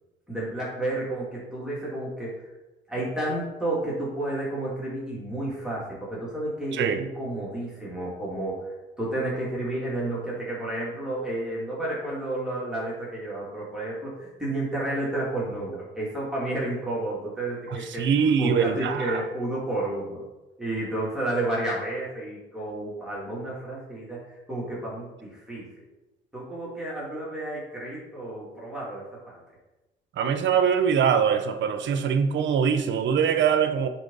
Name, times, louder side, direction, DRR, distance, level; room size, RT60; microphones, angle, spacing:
voice 1, 0.3-2.4 2.9-8.7 9.0-20.2 20.6-25.8 26.3-29.3, right 1 dB, 5° right, -7 dB, 2.8 m, -31 dB
voice 2, 17.7-19.2 30.2-33.9, right 7 dB, 70° right, 8 dB, 0.8 m, -23 dB
9.9 x 4.4 x 4.0 m, 1.0 s
cardioid pair, 90°, 20 cm